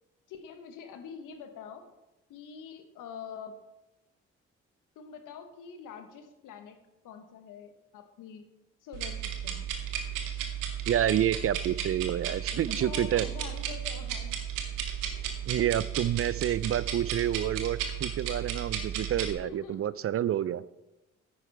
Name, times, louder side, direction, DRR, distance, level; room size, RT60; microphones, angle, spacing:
voice 1, 0.3-1.9 2.3-3.6 4.9-8.5 8.8-9.7 12.5-14.4 19.4-20.0, left 7 dB, 75° left, 7 dB, 1.2 m, -45 dB
sound 1, 8.9-19.3, right 9 dB, 80° right, 1.1 m, -34 dB
voice 2, 10.9-13.3 15.5-20.6, right 11 dB, 45° right, 18 dB, 0.4 m, -28 dB
10.5 x 9.0 x 3.4 m, 1.0 s
hypercardioid pair, 45°, 32 cm